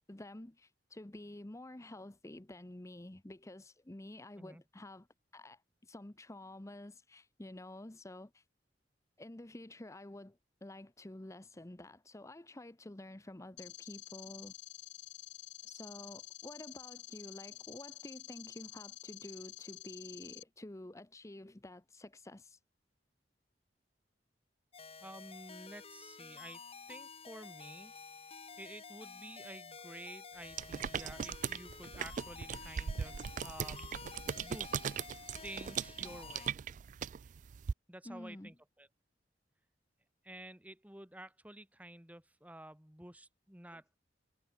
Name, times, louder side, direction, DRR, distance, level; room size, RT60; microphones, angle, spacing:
voice 1, 0.1-5.1 5.3-8.4 9.2-14.5 15.6-22.6 38.0-38.5 43.7-43.8, left 1 dB, 15° left, 0.8 m, -50 dB
sound 1, 13.6-20.4, left 15 dB, 75° left, 1.7 m, -50 dB
sound 2, 24.7-36.5, left 5 dB, 35° left, 3.8 m, -51 dB
voice 2, 25.0-26.6 26.9-27.9 28.6-34.0 34.4-34.7 35.4-36.6 37.9-38.9 40.2-44.0, right 1 dB, 10° right, 2.3 m, -51 dB
sound 3, 30.5-37.7, right 7 dB, 45° right, 0.3 m, -39 dB
head